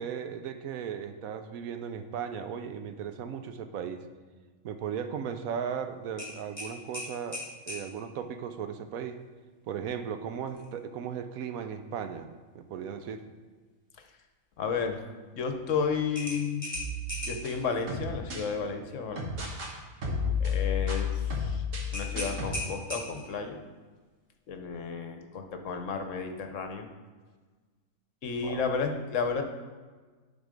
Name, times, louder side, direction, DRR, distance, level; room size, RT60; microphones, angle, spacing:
voice 1, 0.0-4.0 4.6-9.2 9.7-12.3 12.5-13.2 20.0-20.4 28.4-28.6, right 7 dB, 80° right, 9 dB, 1.1 m, -36 dB
sound 1, 6.2-7.8 10.5-10.7 11.1-11.2 16.1-17.5 21.9-23.4, left 1 dB, 20° left, 2.2 m, -37 dB
voice 2, 14.6-15.0 15.3-16.7 17.2-19.3 20.4-21.6 21.9-23.6 24.5-26.9 28.2-29.4, left 5 dB, 65° left, 6 dB, 1.1 m, -32 dB
sound 2, 16.7-18.5 19.2-19.7 20.0-22.6, left 5 dB, 65° right, 1.7 m, -32 dB
11.0 x 4.1 x 5.1 m, 1.4 s
omnidirectional pair, 1.4 m